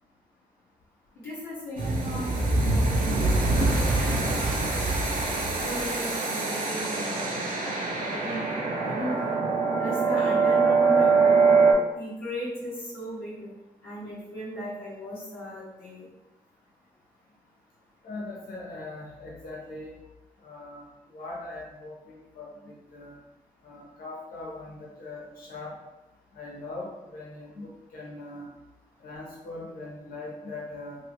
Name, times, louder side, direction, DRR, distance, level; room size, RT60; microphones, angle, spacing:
voice 1, 1.2-4.7 5.3-7.7 8.0-9.4 9.8-11.5 11.9-13.5 13.8-16.0, equal, 90° left, -9 dB, 1.0 m, -37 dB
sound 1, 1.8-11.7, right 4 dB, 60° right, 0.7 m, -24 dB
voice 2, 18.0-20.0 20.4-23.2 23.6-25.7 26.3-28.5 29.0-31.0, left 2 dB, 70° left, -4 dB, 1.1 m, -41 dB
2.9 x 2.7 x 3.0 m, 0.98 s
supercardioid pair, 45°, 15 cm